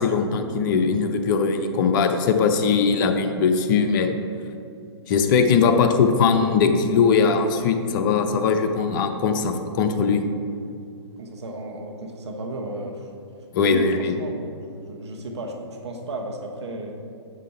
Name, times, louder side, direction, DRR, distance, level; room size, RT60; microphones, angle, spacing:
voice 1, 0.0-4.2 5.1-10.2 13.5-14.1, left 5 dB, 45° left, 6 dB, 0.7 m, -20 dB
voice 2, 11.2-13.1 13.6-17.0, right 1 dB, 70° right, 3 dB, 1.3 m, -34 dB
8.0 x 6.2 x 4.3 m, 2.4 s
hypercardioid pair, 130°, 15 cm